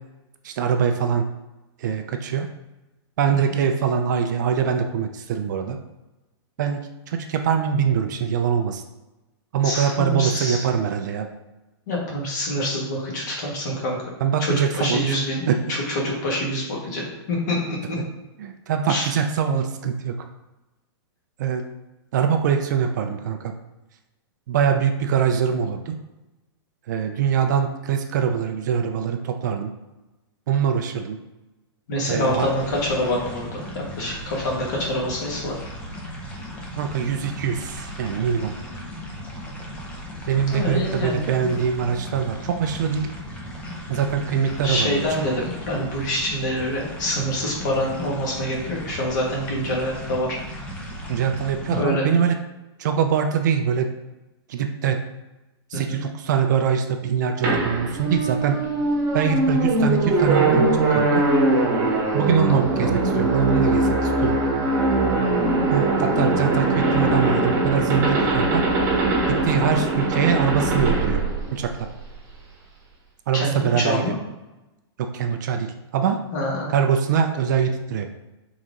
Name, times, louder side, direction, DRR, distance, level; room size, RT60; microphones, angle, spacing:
voice 1, 0.4-1.3 1.8-2.5 3.2-5.8 6.6-6.8 7.1-8.8 9.5-11.3 14.2-15.1 15.5-15.6 18.4-20.2 21.4-21.6 22.1-23.5 24.5-26.0 26.9-29.7 30.5-31.2 32.1-32.5 36.7-38.5 40.3-43.1 43.9-45.1 51.1-52.4 52.8-53.9 54.5-55.0 55.7-58.6 59.1-61.2 62.1-64.4 65.7-68.6 69.3-71.2 71.5-71.9 73.3-74.1 75.0-76.2 76.7-78.1, right 7 dB, 40° right, 5 dB, 0.5 m, -23 dB
voice 2, 3.3-3.6 9.6-10.6 11.9-14.0 14.4-18.0 18.9-19.1 31.9-35.6 40.5-41.5 44.6-50.4 51.7-52.1 55.7-56.0 62.5-62.9 73.3-74.1 76.3-76.7, left 1 dB, 40° left, -2 dB, 1.8 m, -26 dB
sound 1, 32.1-51.8, equal, 10° left, 0.7 m, -36 dB
sound 2, 57.4-72.2, right 2 dB, 20° right, 1.2 m, -21 dB
6.3 x 4.0 x 3.7 m, 1.0 s
hypercardioid pair, 175°, 14 cm